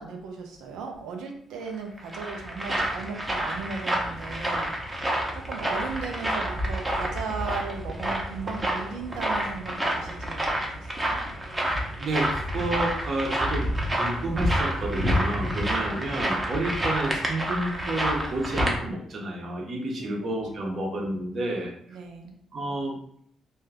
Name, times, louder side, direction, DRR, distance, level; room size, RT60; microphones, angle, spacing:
voice 1, 0.0-4.8 5.3-11.2 15.6-16.1 20.0-20.3 20.6-20.8 21.9-22.3, right 4 dB, 90° right, 3 dB, 0.6 m, -37 dB
sound 1, 1.7-18.8, equal, 15° right, 0.7 m, -28 dB
voice 2, 11.9-22.0 22.5-23.0, right 1 dB, 50° right, -1 dB, 0.7 m, -30 dB
2.6 x 2.3 x 3.3 m, 0.64 s
cardioid pair, 90°, 0 cm